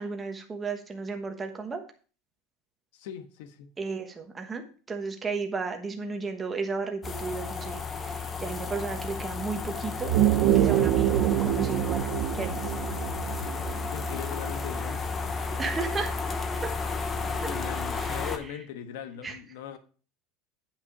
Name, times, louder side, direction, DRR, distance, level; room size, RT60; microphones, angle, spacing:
voice 1, 0.0-1.8 3.8-10.1 10.5-12.1 12.3-12.6 15.6-16.3 18.0-18.3 19.2-19.4, right 4 dB, 15° right, 1.2 m, -34 dB
voice 2, 2.9-3.7 13.9-15.2 16.9-19.8, left 9 dB, 70° left, 1.3 m, -40 dB
sound 1, 7.0-18.4, left 4 dB, 20° left, 0.9 m, -33 dB
sound 2, 10.0-14.8, right 13 dB, 50° right, 0.6 m, -25 dB
10.0 x 6.0 x 4.9 m
supercardioid pair, 170°, 0 cm